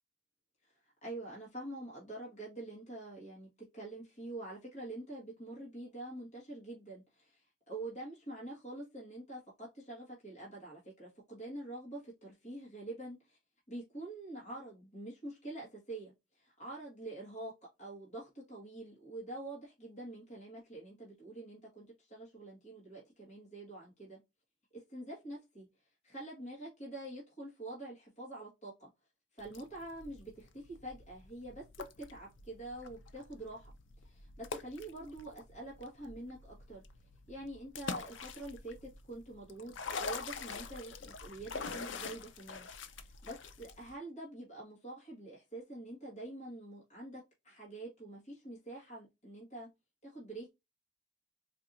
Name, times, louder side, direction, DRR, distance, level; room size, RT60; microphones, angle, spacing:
voice 1, 0.6-13.4 13.7-17.5 17.8-24.2 24.7-25.7 26.0-28.9 29.3-33.7 34.0-36.4 36.7-36.8 37.3-49.7 50.0-50.5, right 1 dB, 35° left, 1.6 m, -46 dB
sound 1, 29.4-43.9, left 4 dB, 70° left, 0.5 m, -45 dB
4.3 x 2.7 x 2.6 m
head